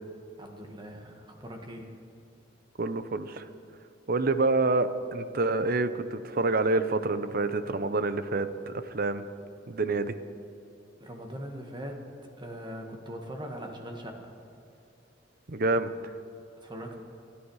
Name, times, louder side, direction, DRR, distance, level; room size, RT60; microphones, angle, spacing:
voice 1, 0.4-2.0 11.0-12.0 12.4-14.3 16.6-17.0, equal, 25° right, 3 dB, 1.7 m, -41 dB
voice 2, 2.8-3.5 4.1-9.2 9.7-10.1 15.5-16.1, right 3 dB, 50° right, 12 dB, 0.8 m, -27 dB
28.0 x 10.0 x 4.9 m, 2.9 s
head